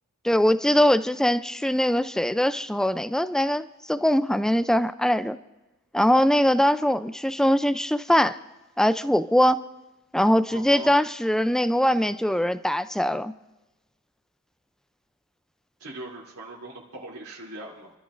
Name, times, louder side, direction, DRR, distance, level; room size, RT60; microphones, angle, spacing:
voice 1, 0.2-5.4 5.9-8.4 8.8-9.6 10.1-13.3, equal, 5° left, 12 dB, 0.4 m, -22 dB
voice 2, 10.5-10.9 15.8-17.9, right 2 dB, 85° right, -4 dB, 3.0 m, -40 dB
29.5 x 13.5 x 2.6 m, 1.0 s
head